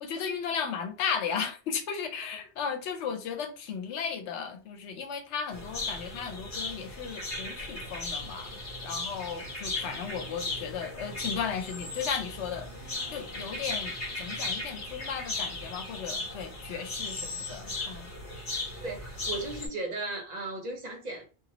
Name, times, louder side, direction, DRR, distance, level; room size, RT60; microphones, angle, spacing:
voice 1, 0.0-8.5 8.8-13.9 14.2-18.1, left 7 dB, 85° left, 0.9 m, -35 dB
sound 1, 5.5-19.7, left 2 dB, 45° left, 1.3 m, -37 dB
voice 2, 18.8-21.2, right 2 dB, 45° right, 0.8 m, -36 dB
2.9 x 2.3 x 2.9 m
omnidirectional pair, 1.1 m